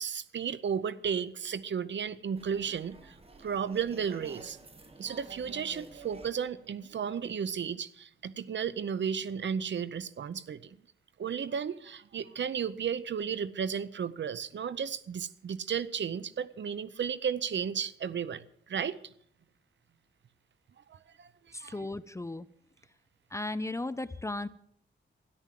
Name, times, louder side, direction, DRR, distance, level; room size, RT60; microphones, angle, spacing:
voice 1, 0.0-3.1 3.4-4.6 5.0-10.8 11.2-18.4 18.7-19.0 20.9-21.3 21.6-21.9, right 7 dB, 65° right, 0.7 m, -34 dB
sound 1, 2.4-7.5, right 2 dB, 30° right, 1.7 m, -51 dB
voice 2, 21.5-22.5 23.3-24.5, left 2 dB, 15° left, 0.5 m, -35 dB
13.0 x 11.0 x 7.5 m
wide cardioid pair, 150°, 21 cm